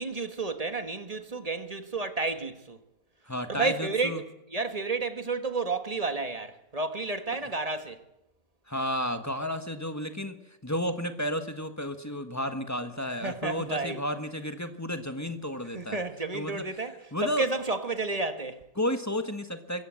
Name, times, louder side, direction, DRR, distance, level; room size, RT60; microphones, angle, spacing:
voice 1, 0.0-2.8 3.5-4.2 4.5-8.0 13.2-14.0 15.7-17.0 17.2-18.7, right 3 dB, 25° right, 1.6 m, -31 dB
voice 2, 3.3-4.2 8.7-16.0 16.3-16.7 17.1-17.5 18.8-19.8, equal, 10° left, 1.4 m, -32 dB
24.5 x 15.5 x 7.7 m
omnidirectional pair, 1.6 m